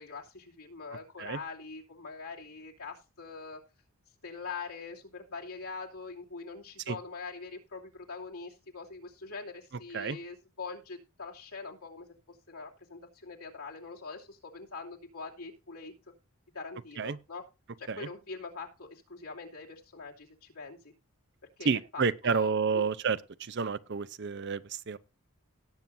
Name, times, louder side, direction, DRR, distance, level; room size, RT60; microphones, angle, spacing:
voice 1, 0.0-3.6 4.2-15.9 16.5-17.4 17.8-20.9 21.6-22.8, left 4 dB, 85° left, 2.7 m, -43 dB
voice 2, 21.7-25.0, right 5 dB, 50° right, 0.6 m, -30 dB
18.0 x 7.6 x 2.6 m
head